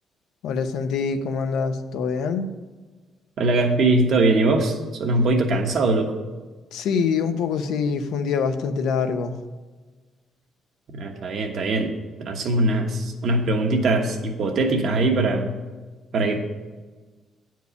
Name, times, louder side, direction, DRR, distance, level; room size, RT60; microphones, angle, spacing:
voice 1, 0.4-2.5 6.7-9.3, left 5 dB, 80° left, 8 dB, 0.7 m, -25 dB
voice 2, 3.4-6.1 11.0-11.9 12.2-15.5 16.1-16.4, right 2 dB, 50° right, 3 dB, 1.2 m, -21 dB
9.6 x 4.6 x 6.9 m, 1.3 s
cardioid pair, 165°, 0 cm